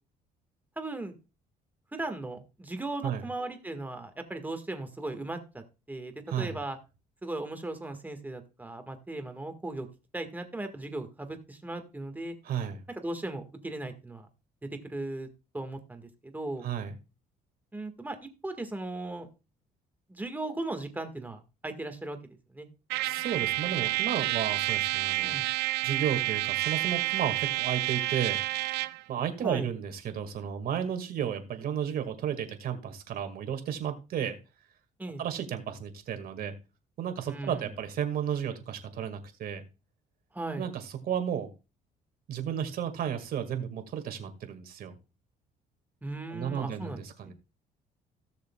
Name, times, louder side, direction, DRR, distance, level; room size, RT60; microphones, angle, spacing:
voice 1, 0.8-1.2 1.9-5.6 5.9-6.1 6.4-6.8 7.2-9.9 10.1-12.3 12.9-14.3 14.9-15.3 15.5-16.7 17.7-18.2 18.4-19.3 20.1-22.2 22.5-22.7 25.2-25.5 29.4-29.7 35.0-35.2 37.3-37.7 40.3-40.7 46.0-47.3, right 2 dB, 10° right, 6 dB, 1.7 m, -37 dB
voice 2, 12.4-12.8 16.6-17.0 23.0-25.4 25.8-28.4 29.1-34.4 35.2-36.5 37.0-39.6 40.6-41.5 42.3-44.9 46.3-47.3, right 8 dB, 60° right, 7 dB, 1.9 m, -33 dB
Trumpet, 22.9-29.0, right 18 dB, 80° right, 0.4 m, -29 dB
17.0 x 6.6 x 2.3 m, 0.29 s
cardioid pair, 110°, 17 cm